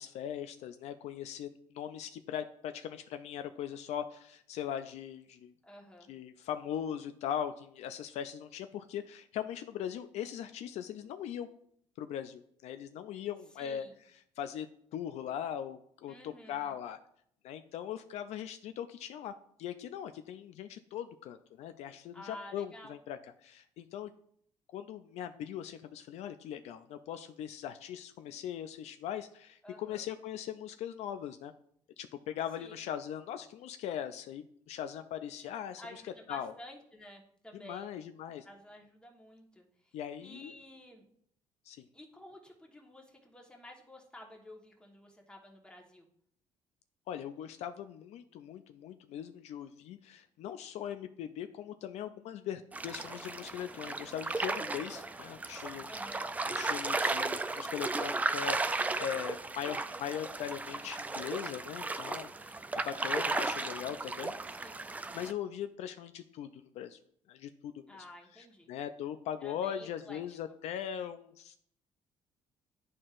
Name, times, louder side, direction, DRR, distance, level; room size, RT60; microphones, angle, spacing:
voice 1, 0.0-5.5 6.1-11.5 12.0-13.9 14.4-14.7 14.9-17.0 17.4-19.3 19.6-24.1 24.7-31.5 32.0-36.0 36.3-36.5 37.5-38.5 39.9-40.5 41.7-41.8 47.1-55.9 56.5-62.3 62.7-64.3 65.1-67.0 67.3-67.9 68.3-71.6, left 9 dB, 70° left, 9 dB, 0.4 m, -40 dB
voice 2, 5.6-6.1 13.6-13.9 16.1-16.8 22.1-23.0 29.6-30.1 32.6-32.7 35.8-37.9 38.4-39.9 40.2-41.0 41.9-46.1 55.9-56.3 64.5-64.8 67.9-68.7 69.4-70.4, left 1 dB, 10° left, 1 dB, 1.2 m, -51 dB
sound 1, 52.7-65.3, right 3 dB, 15° right, 0.3 m, -35 dB
11.0 x 4.3 x 2.5 m, 0.68 s
cardioid pair, 115°, 12 cm